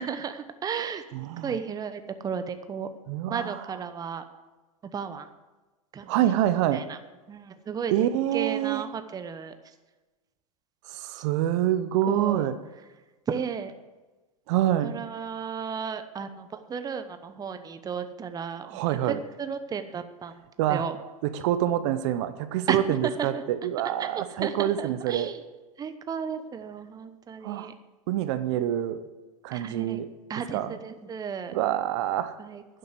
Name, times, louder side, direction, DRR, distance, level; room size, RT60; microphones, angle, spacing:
voice 1, 0.0-1.0 1.4-2.9 3.3-4.2 4.9-5.3 5.9-6.1 6.7-7.0 7.3-7.9 8.3-9.5 12.1-12.4 13.3-13.7 14.8-18.8 19.1-20.3 20.7-21.0 22.7-22.8 23.2-23.4 24.0-25.4 25.8-27.7 29.5-30.0 30.3-31.5 32.4-32.8, right 6 dB, 20° right, 10 dB, 0.9 m, -34 dB
voice 2, 1.1-1.6 3.1-3.7 6.1-6.8 7.9-8.9 10.9-12.6 14.5-15.0 18.6-19.2 20.6-20.9 21.2-25.3 27.4-27.7 28.1-29.1 29.4-30.1 30.5-30.8 31.5-32.4, right 12 dB, 55° right, 12 dB, 0.9 m, -26 dB
10.5 x 7.8 x 8.1 m, 1.2 s
hypercardioid pair, 100°, 18 cm